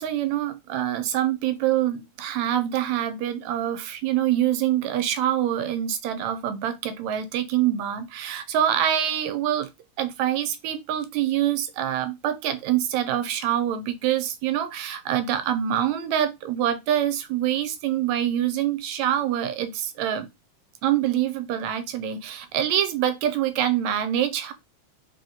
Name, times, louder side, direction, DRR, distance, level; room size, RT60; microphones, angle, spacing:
voice 1, 0.0-9.7 10.0-20.3 20.8-24.5, right 11 dB, 80° right, 1.9 m, -25 dB
4.7 x 2.9 x 3.9 m
omnidirectional pair, 3.4 m